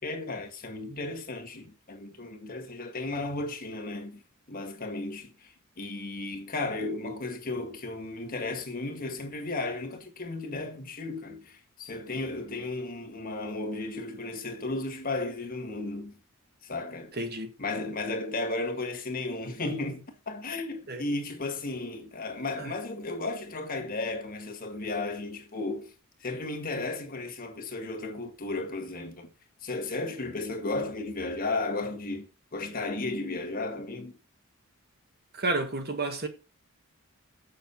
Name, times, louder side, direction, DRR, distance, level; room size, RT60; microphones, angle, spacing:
voice 1, 0.0-4.2 4.5-16.2 16.6-17.2 17.6-25.9 26.2-29.3 29.6-34.2, left 2 dB, 45° left, 1.7 m, -34 dB
voice 2, 17.1-17.5 20.9-21.0 22.6-22.7 35.3-36.3, right 2 dB, 50° right, 1.5 m, -31 dB
7.2 x 5.9 x 7.0 m
head